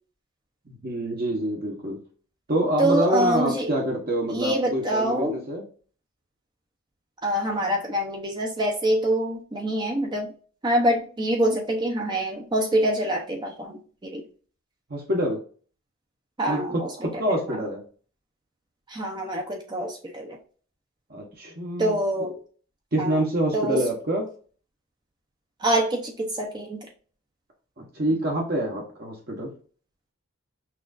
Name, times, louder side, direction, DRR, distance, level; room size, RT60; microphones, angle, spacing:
voice 1, 0.7-2.0 2.5-5.6 14.9-15.4 16.5-17.8 21.1-22.3 22.9-24.3 27.8-29.5, right 1 dB, 45° right, -1 dB, 1.0 m, -26 dB
voice 2, 2.8-3.7 4.3-5.4 7.2-10.3 10.6-14.2 16.4-16.9 18.9-20.4 21.8-22.3 23.0-23.1 23.5-23.8 25.6-26.9, right 1 dB, 20° right, 1 dB, 0.6 m, -25 dB
5.8 x 2.5 x 2.4 m, 0.42 s
head